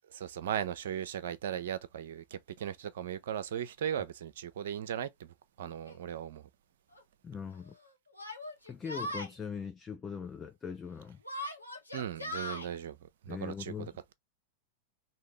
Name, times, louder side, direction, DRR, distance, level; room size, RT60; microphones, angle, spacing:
voice 1, 0.1-5.3 5.6-6.5 11.9-13.0 13.2-14.1, right 9 dB, 60° right, 0.6 m, -37 dB
Yell, 5.9-6.0 6.9-7.0 8.1-9.3 11.2-12.7, left 1 dB, 85° left, 1.0 m, -39 dB
voice 2, 7.2-7.7 8.7-11.2 13.3-13.9, left 6 dB, 20° left, 0.5 m, -41 dB
3.8 x 2.8 x 3.1 m
figure-of-eight pair, 90°, 0 cm